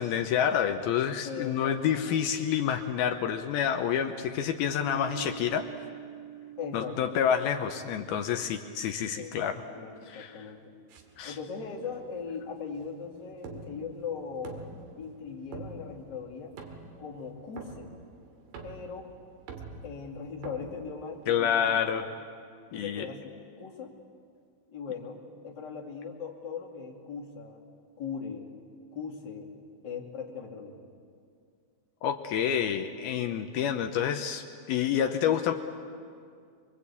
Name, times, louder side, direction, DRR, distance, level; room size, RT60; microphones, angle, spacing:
voice 1, 0.0-5.7 6.7-9.6 10.1-10.4 11.2-11.4 21.3-22.0 22.7-23.1 32.0-35.5, left 8 dB, 75° left, 6 dB, 2.3 m, -28 dB
voice 2, 1.2-2.2 6.6-7.2 9.1-10.7 11.2-14.6 15.0-16.5 17.0-17.9 18.6-19.1 19.8-21.8 22.7-23.9 24.7-27.6 28.0-28.5 28.9-29.5 29.8-30.8, left 5 dB, 30° left, -1 dB, 2.1 m, -39 dB
Piano, 4.8-10.2, right 9 dB, 90° right, 5.6 m, -46 dB
sound 1, 10.9-21.6, right 4 dB, 70° right, 4.0 m, -47 dB
24.5 x 24.0 x 8.4 m, 2.2 s
omnidirectional pair, 5.3 m